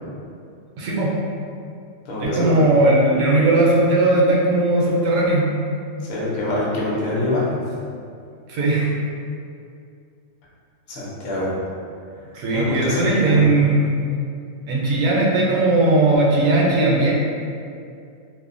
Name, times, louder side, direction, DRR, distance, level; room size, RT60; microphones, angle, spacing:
voice 1, 0.8-1.1 2.2-5.5 8.5-8.9 12.3-14.1 14.7-17.1, right 2 dB, 85° right, -4 dB, 1.0 m, -18 dB
voice 2, 2.1-2.7 6.1-7.6 10.9-11.6 12.5-13.4, left 1 dB, 55° left, -6 dB, 0.7 m, -24 dB
2.5 x 2.1 x 2.5 m, 2.4 s
omnidirectional pair, 1.4 m